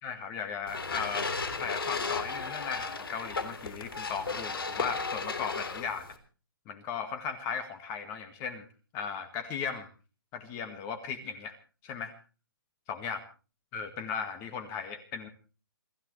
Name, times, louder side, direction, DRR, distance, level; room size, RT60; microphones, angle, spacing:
voice 1, 0.0-1.3 1.6-6.1 6.7-8.7 8.9-9.9 10.3-11.6 11.8-12.1 12.9-13.2 13.7-15.3, left 6 dB, 25° left, 9 dB, 1.9 m, -37 dB
sound 1, 0.7-6.2, left 4 dB, 90° left, 3.3 m, -35 dB
28.5 x 13.5 x 3.2 m, 0.36 s
hypercardioid pair, 150°, 12 cm